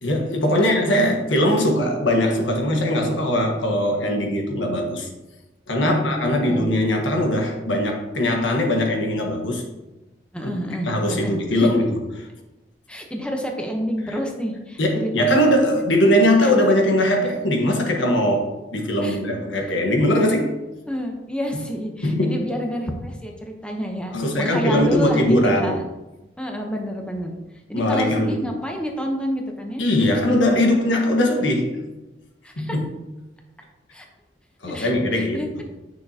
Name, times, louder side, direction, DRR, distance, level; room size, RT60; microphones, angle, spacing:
voice 1, 0.0-5.1 5.7-9.6 10.4-10.5 10.8-12.3 14.1-14.2 14.8-20.5 21.5-21.6 22.0-22.5 24.1-25.8 27.7-28.4 29.8-31.8 32.6-32.8 34.6-35.6, left 1 dB, 90° left, 2 dB, 1.4 m, -20 dB
voice 2, 5.8-6.7 10.3-11.7 12.9-15.5 16.4-16.5 19.0-19.2 20.9-25.8 26.4-27.4 27.7-30.2 32.4-32.8 33.9-34.0 34.7-35.6, equal, 5° left, 1 dB, 0.9 m, -29 dB
9.4 x 6.3 x 2.9 m, 1.0 s
head